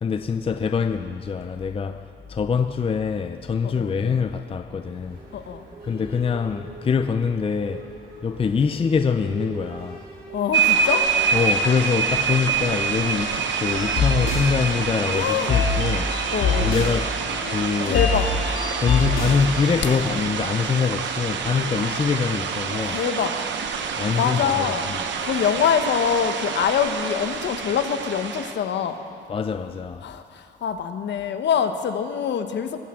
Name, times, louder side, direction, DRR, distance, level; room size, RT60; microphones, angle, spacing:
voice 1, 0.0-5.3 5.8-7.9 8.2-10.1 11.3-16.3 16.6-17.2 17.5-18.0 18.8-23.0 24.0-25.0 29.3-30.1, left 5 dB, 30° left, 0.5 m, -24 dB
sound 1, 4.8-11.5, right 2 dB, 50° right, 4.4 m, -41 dB
voice 2, 5.3-5.7 10.3-11.1 15.1-15.5 16.3-16.7 17.9-18.3 22.9-23.3 24.2-24.9 25.2-29.0 30.0-32.8, left 7 dB, 65° left, 1.0 m, -24 dB
sound 2, 10.5-28.5, right 6 dB, 70° right, 1.1 m, -26 dB
sound 3, 13.7-20.2, left 4 dB, 85° left, 2.6 m, -25 dB
22.5 x 13.5 x 3.7 m
cardioid pair, 90°, 20 cm